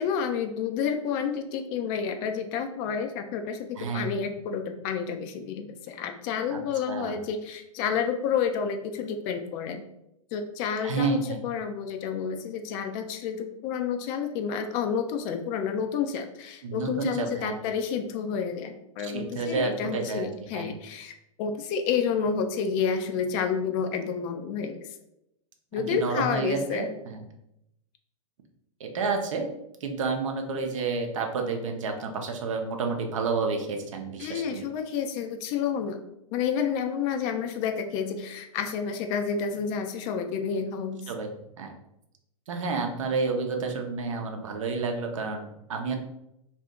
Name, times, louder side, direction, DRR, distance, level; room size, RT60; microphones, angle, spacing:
voice 1, 0.0-9.8 10.3-21.1 21.4-24.8 25.7-26.9 34.2-36.0 36.3-41.1, left 6 dB, 35° left, 6 dB, 0.4 m, -30 dB
voice 2, 3.8-4.1 6.5-6.6 6.9-7.1 10.8-11.5 16.6-17.6 19.0-20.3 20.5-20.8 25.7-27.2 28.8-29.5 29.8-34.6 41.1-41.3 41.6-41.7 42.5-45.9, right 4 dB, 65° right, 4 dB, 0.7 m, -30 dB
2.7 x 2.5 x 3.5 m, 0.83 s
hypercardioid pair, 105°, 18 cm